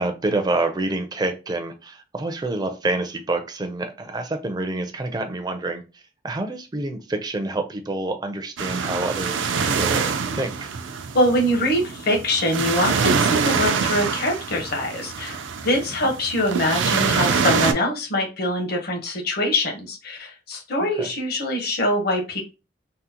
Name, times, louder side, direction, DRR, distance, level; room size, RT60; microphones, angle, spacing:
voice 1, 0.0-10.7 21.0-21.1, right 2 dB, 20° right, 7 dB, 0.4 m, -27 dB
sound 1, 8.6-17.7, right 5 dB, 85° right, 0.4 m, -25 dB
voice 2, 11.1-22.4, left 1 dB, 55° left, 2 dB, 0.9 m, -23 dB
3.7 x 2.0 x 2.8 m, 0.30 s
head